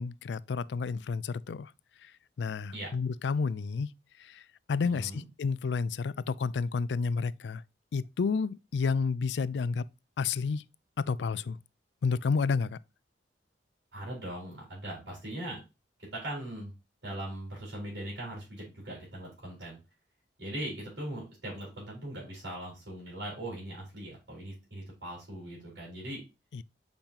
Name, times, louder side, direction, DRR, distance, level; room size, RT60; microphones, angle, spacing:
voice 1, 0.0-1.7 2.4-3.9 4.2-4.4 4.7-7.6 7.9-9.8 10.2-10.6 11.0-11.6 12.0-12.8 26.5-26.6, left 5 dB, 70° left, 0.4 m, -30 dB
voice 2, 4.8-5.2 13.9-15.6 16.1-16.7 17.0-19.8 20.4-26.2, right 1 dB, 70° right, 4.5 m, -40 dB
7.2 x 5.2 x 2.9 m
head